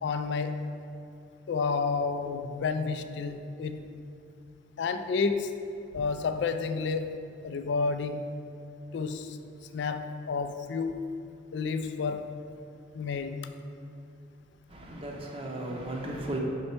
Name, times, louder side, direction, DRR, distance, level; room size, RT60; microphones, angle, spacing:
voice 1, 0.0-0.8 1.5-3.8 4.8-5.5 5.9-7.2 7.4-8.3 8.9-9.4 9.7-11.1 11.5-12.3 12.9-13.5, left 4 dB, 60° left, 9 dB, 0.3 m, -30 dB
voice 2, 14.7-16.4, right 1 dB, 30° right, 0 dB, 0.7 m, -35 dB
5.4 x 4.3 x 4.3 m, 2.6 s
head